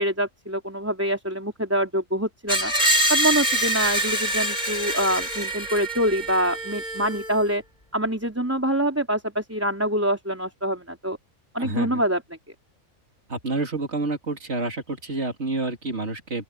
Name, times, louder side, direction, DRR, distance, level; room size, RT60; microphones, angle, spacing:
voice 1, 0.0-2.7 3.1-7.6 7.9-11.2 11.5-12.2, equal, 10° right, 4.0 m, -25 dB
Screech, 2.5-7.4, right 1 dB, 30° left, 4.6 m, -25 dB
voice 2, 11.6-12.0 13.3-16.4, right 3 dB, 55° right, 3.4 m, -29 dB
open air
omnidirectional pair, 1.4 m